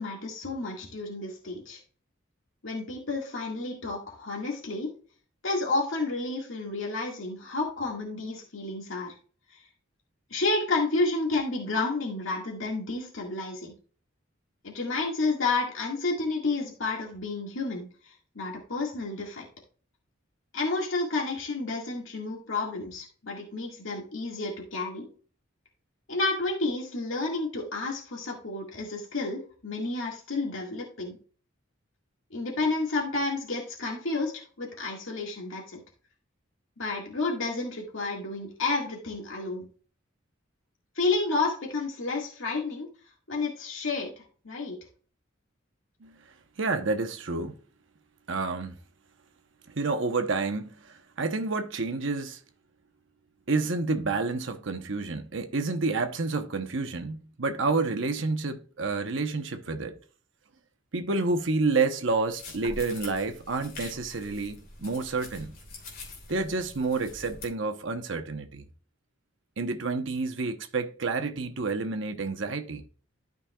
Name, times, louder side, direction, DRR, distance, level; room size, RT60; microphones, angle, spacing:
voice 1, 0.0-1.8 2.6-4.9 5.4-9.1 9.5-9.6 10.3-13.7 14.6-19.5 20.5-25.1 26.1-31.2 32.3-35.8 36.8-39.7 41.0-42.9 43.3-44.1 44.5-44.8, left 3 dB, 75° left, 1.9 m, -30 dB
voice 2, 46.6-47.6 48.3-48.8 49.7-52.4 53.5-60.0 60.9-65.6 66.3-68.7 69.6-72.8, right 3 dB, 70° right, 0.9 m, -29 dB
sound 1, 62.3-67.5, left 2 dB, 45° left, 3.0 m, -44 dB
13.0 x 5.3 x 2.3 m
head